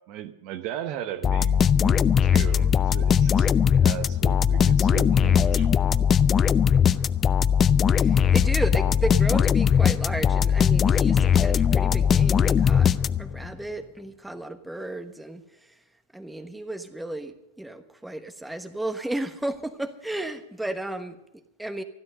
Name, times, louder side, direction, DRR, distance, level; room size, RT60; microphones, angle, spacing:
voice 1, 0.0-5.7, right 11 dB, 45° right, 9 dB, 0.9 m, -37 dB
sound 1, 1.2-13.5, left 7 dB, 25° left, 0.4 m, -20 dB
voice 2, 8.0-15.8 16.1-21.8, right 1 dB, 5° right, 7 dB, 1.2 m, -34 dB
13.0 x 12.0 x 6.6 m, 0.89 s
hypercardioid pair, 100°, 0 cm